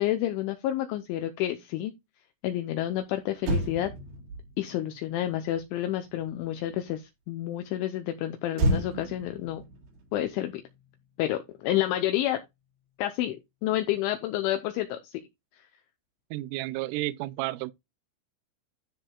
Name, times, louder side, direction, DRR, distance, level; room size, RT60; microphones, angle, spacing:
voice 1, 0.0-1.9 2.4-3.9 4.6-9.6 10.1-10.6 11.2-12.4 13.0-15.2, left 13 dB, 80° left, 2.9 m, -29 dB
Motor vehicle (road), 3.0-3.1 3.4-6.9 8.5-11.1 11.4-11.7, right 1 dB, 60° right, 3.5 m, -33 dB
voice 2, 16.3-17.7, right 17 dB, 85° right, 2.9 m, -32 dB
13.0 x 5.3 x 2.3 m
omnidirectional pair, 5.8 m